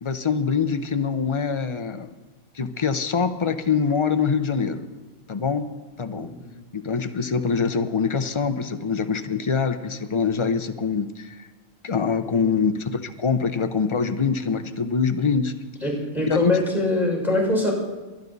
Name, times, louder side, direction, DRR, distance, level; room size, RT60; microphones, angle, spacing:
voice 1, 0.0-2.1 2.5-4.9 5.3-5.7 6.0-6.3 6.7-11.4 11.8-15.5 16.3-16.6, left 5 dB, 40° left, 9 dB, 0.4 m, -24 dB
voice 2, 15.8-17.7, left 2 dB, ahead, -2 dB, 5.9 m, -23 dB
23.0 x 10.5 x 4.1 m, 1.2 s
omnidirectional pair, 1.4 m